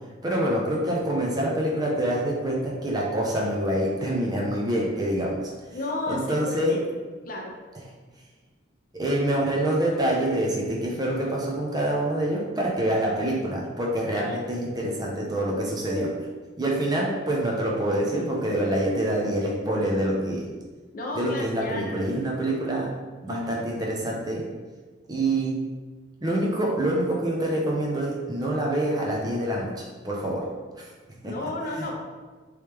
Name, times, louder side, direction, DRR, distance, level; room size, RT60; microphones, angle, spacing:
voice 1, 0.2-5.4 6.1-6.8 8.9-16.2 16.6-20.5 21.1-22.9 23.2-24.5 25.1-25.6 26.2-30.5 30.7-31.4 31.8-31.9, right 1 dB, 20° right, -2 dB, 0.5 m, -26 dB
voice 2, 5.7-6.8 7.2-7.5 14.1-14.4 20.9-22.0 23.3-23.5 31.2-31.9, left 2 dB, 45° left, 0 dB, 0.5 m, -33 dB
3.1 x 3.1 x 3.3 m, 1.3 s
head